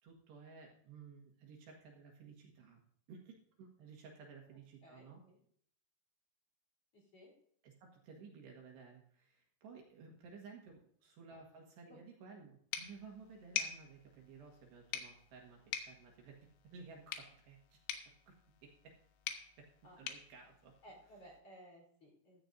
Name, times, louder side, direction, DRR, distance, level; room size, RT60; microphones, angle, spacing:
voice 1, 0.0-2.8 3.1-5.2 7.6-17.8 18.3-18.4 18.6-18.9 19.6-19.7 20.0-20.8, right 5 dB, 65° right, 0 dB, 3.3 m, -56 dB
voice 2, 4.8-5.4 6.9-7.3 11.9-12.0 19.8-20.0 20.8-22.4, equal, 35° left, -2 dB, 4.0 m, -58 dB
sound 1, 12.7-21.4, left 9 dB, 85° left, 3.9 m, -46 dB
15.0 x 14.0 x 2.6 m, 0.63 s
omnidirectional pair, 5.8 m